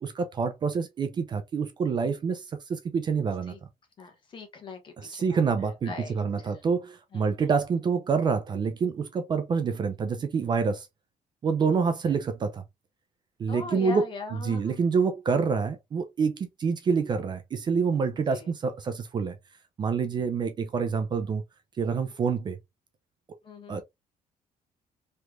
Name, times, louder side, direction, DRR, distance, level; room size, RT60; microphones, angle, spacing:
voice 1, 0.0-2.4 2.7-3.5 5.0-10.9 11.4-12.6 13.4-14.1 14.4-19.4 19.8-21.4 21.8-22.6 23.7-23.8, right 5 dB, 30° right, 0.4 m, -27 dB
voice 2, 4.0-5.4 5.8-6.5 7.1-7.5 13.5-14.9 18.3-18.5 23.4-23.8, left 4 dB, 35° left, 1.0 m, -41 dB
3.2 x 3.1 x 2.3 m
cardioid pair, 160°, 14 cm